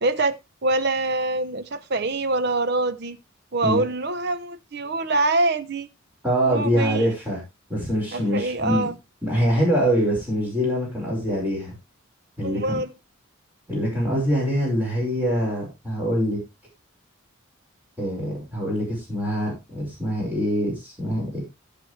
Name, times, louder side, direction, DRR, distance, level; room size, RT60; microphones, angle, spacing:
voice 1, 0.0-3.2 3.5-5.9 6.5-7.1 8.1-8.9 12.4-12.9, right 2 dB, 50° right, 0.9 m, -25 dB
voice 2, 6.2-7.4 7.7-8.9 9.2-11.7 12.4-12.8 13.7-16.4 18.0-21.4, equal, 10° right, 5.6 m, -24 dB
15.5 x 6.3 x 3.3 m
head